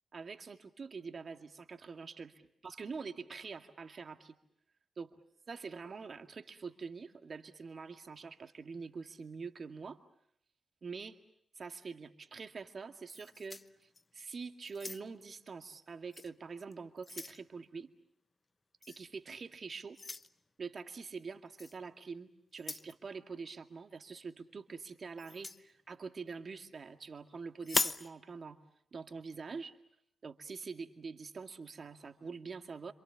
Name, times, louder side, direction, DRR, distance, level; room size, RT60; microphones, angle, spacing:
voice 1, 0.1-2.3 2.6-4.4 5.0-5.1 5.5-10.0 10.8-11.2 11.6-17.9 18.9-20.0 20.6-28.6 28.9-29.8 30.2-32.9, right 5 dB, 55° right, 7 dB, 2.1 m, -45 dB
sound 1, 13.1-14.2 14.7-15.3 16.1-16.3 16.7-17.4 18.8-19.0 19.9-20.3 21.6-21.8 22.5-22.9 25.2-25.6 27.6-28.1, left 3 dB, 35° left, 1.0 m, -38 dB
27.0 x 26.5 x 7.2 m, 0.72 s
supercardioid pair, 45°, 0 cm